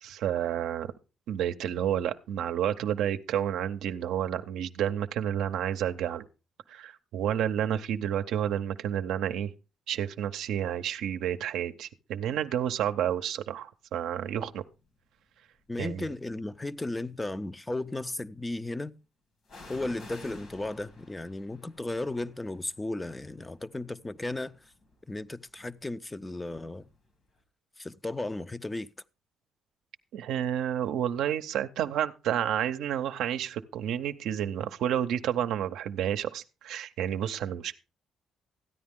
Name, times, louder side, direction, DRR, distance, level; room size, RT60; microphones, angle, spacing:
voice 1, 0.0-0.9 1.3-6.3 6.7-9.5 9.9-14.6 15.8-16.1 30.1-37.8, right 10 dB, 85° right, 0.6 m, -30 dB
sound 1, 14.5-14.9 15.6-16.6 19.5-27.1 27.4-27.5, left 2 dB, 65° left, 2.7 m, -53 dB
voice 2, 15.7-18.9 19.7-24.6 25.1-26.9 27.8-28.9, left 2 dB, 15° left, 0.5 m, -35 dB
13.5 x 9.5 x 3.6 m
cardioid pair, 90°, 0 cm